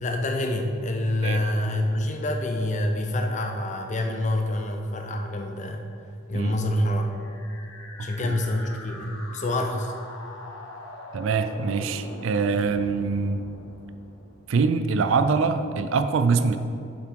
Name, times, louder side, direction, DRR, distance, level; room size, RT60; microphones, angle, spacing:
voice 1, 0.0-5.8 6.3-7.1 8.0-9.9, left 1 dB, 35° left, 3 dB, 0.6 m, -27 dB
sound 1, 7.0-15.0, left 2 dB, 80° left, 1.1 m, -43 dB
voice 2, 8.0-8.4 11.1-13.4 14.5-16.6, right 4 dB, 75° right, 9 dB, 0.4 m, -24 dB
7.3 x 5.8 x 4.6 m, 2.6 s
head